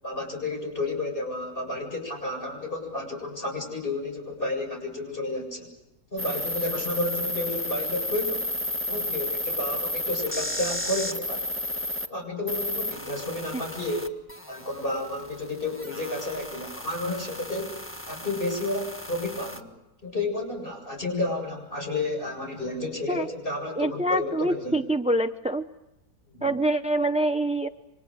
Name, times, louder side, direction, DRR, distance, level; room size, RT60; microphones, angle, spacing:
voice 1, 0.0-5.7 6.1-8.5 8.9-11.5 12.1-14.1 14.5-17.7 18.1-19.7 20.0-24.8 26.3-26.5, left 2 dB, 30° left, 2 dB, 7.9 m, -31 dB
sound 1, 6.2-12.1 12.5-19.6, left 1 dB, 5° left, 1.5 m, -33 dB
voice 2, 23.8-25.6 26.4-27.7, right 1 dB, 10° right, 9 dB, 0.3 m, -25 dB
29.0 x 26.0 x 6.5 m, 0.94 s
omnidirectional pair, 1.9 m